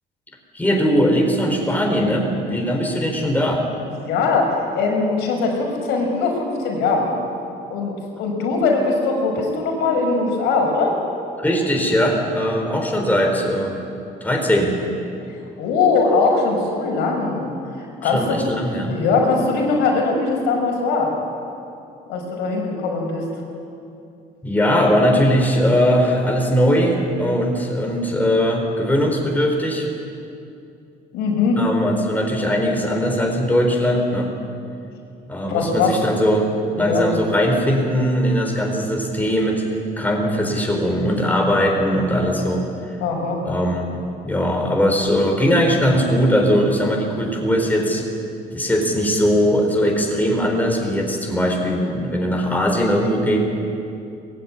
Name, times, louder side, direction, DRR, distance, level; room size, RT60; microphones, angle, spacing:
voice 1, 0.5-3.6 11.4-13.8 14.2-14.8 18.0-19.0 24.4-29.9 31.6-34.3 35.3-36.5 36.7-39.6 40.0-42.7 43.4-43.9 44.2-48.0 48.5-53.4, equal, 10° left, 1 dB, 4.1 m, -20 dB
voice 2, 3.9-7.1 7.7-7.9 8.2-10.9 15.6-17.5 18.0-18.4 18.9-21.1 22.1-23.2 31.1-31.6 35.5-36.0 36.8-37.0 43.0-43.4, left 4 dB, 90° left, 0 dB, 5.6 m, -20 dB
20.0 x 15.5 x 9.9 m, 2.6 s
cardioid pair, 110°, 17 cm